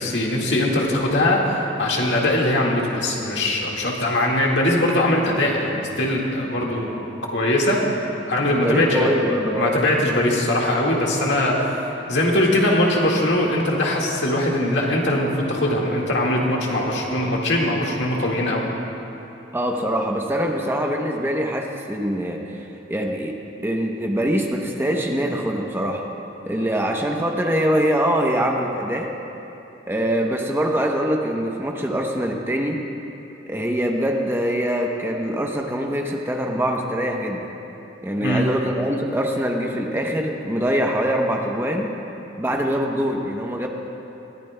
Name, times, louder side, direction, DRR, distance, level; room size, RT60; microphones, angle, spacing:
voice 1, 0.0-7.0 7.3-7.8 8.3-11.6 12.1-18.6 38.2-38.5, left 1 dB, 70° left, -2 dB, 1.8 m, -21 dB
voice 2, 8.6-9.7 19.5-22.4 22.9-23.4 23.6-26.0 26.5-29.1 29.9-32.8 33.5-37.4 38.0-41.9 42.4-43.7, equal, 15° right, 1 dB, 0.7 m, -23 dB
21.0 x 14.5 x 2.2 m, 3.0 s
head